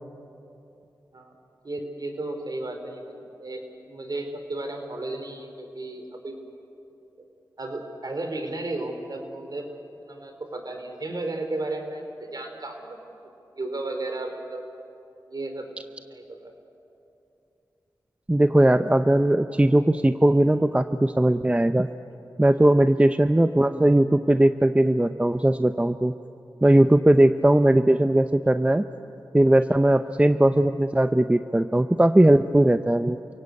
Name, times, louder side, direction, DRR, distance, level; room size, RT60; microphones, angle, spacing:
voice 1, 1.6-6.4 7.6-13.0 13.5-14.6 15.3-15.7 16.1-16.5 26.6-26.7, right 2 dB, 55° right, 4 dB, 3.7 m, -34 dB
voice 2, 18.3-21.9 22.4-26.1 26.6-28.8 29.3-33.2, right 1 dB, 15° right, 10 dB, 0.7 m, -19 dB
28.5 x 17.0 x 8.4 m, 2.8 s
cardioid pair, 40°, 8 cm